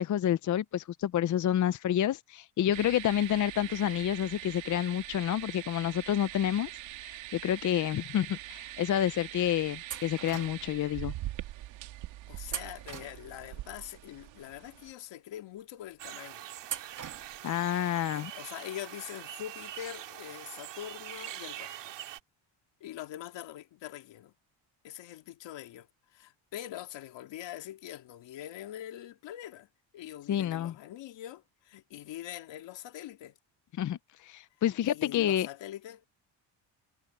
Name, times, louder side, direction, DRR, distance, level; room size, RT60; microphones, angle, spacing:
voice 1, 0.0-6.7 7.0-11.1 17.4-18.3 30.3-30.7 33.8-35.5, left 11 dB, 45° left, 0.6 m, -29 dB
sound 1, 2.7-14.9, right 15 dB, 85° right, 2.1 m, -43 dB
sound 2, 9.9-10.8 12.5-13.6 16.6-17.6, right 8 dB, 40° right, 2.4 m, -41 dB
voice 2, 12.3-16.5 18.1-21.9 22.8-24.3 24.8-29.7 29.9-33.4 34.8-36.0, left 12 dB, 70° left, 2.3 m, -44 dB
sound 3, 16.0-22.2, right 13 dB, 70° right, 2.8 m, -44 dB
cardioid pair, 125°, 44 cm